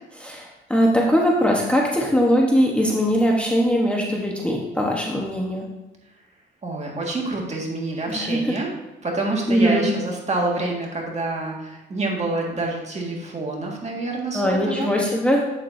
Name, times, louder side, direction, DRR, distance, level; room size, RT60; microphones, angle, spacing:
voice 1, 0.2-5.7 8.1-8.5 9.5-9.9 14.3-15.4, equal, 5° left, -2 dB, 1.1 m, -21 dB
voice 2, 6.6-8.7 9.0-14.9, right 2 dB, 35° right, -1 dB, 1.9 m, -27 dB
8.1 x 7.4 x 2.7 m, 1.0 s
cardioid pair, 90°, 20 cm